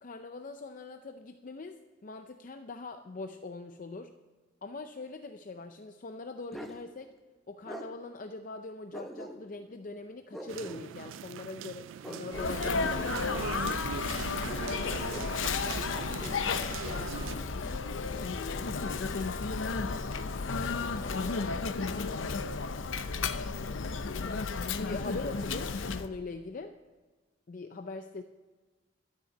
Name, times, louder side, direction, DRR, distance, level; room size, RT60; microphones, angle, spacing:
voice 1, 0.0-4.1 4.6-7.1 7.5-13.9 24.1-24.5 24.8-26.7 27.5-28.2, left 3 dB, 45° left, 7 dB, 0.5 m, -42 dB
Bark, 6.5-6.8 7.7-7.9 8.9-9.7 10.3-10.8 12.0-13.2 14.4-15.3 16.2-17.0, equal, ahead, 1.0 m, -43 dB
sound 1, 10.5-17.4, right 8 dB, 90° right, 0.3 m, -41 dB
Sneeze, 12.3-26.1, left 4 dB, 85° left, 0.7 m, -33 dB
voice 2, 12.9-13.2 15.9-17.9 18.2-19.3 20.7-22.6, left 1 dB, 15° left, 0 dB, 2.0 m, -50 dB
12.5 x 6.8 x 8.9 m, 1.3 s
head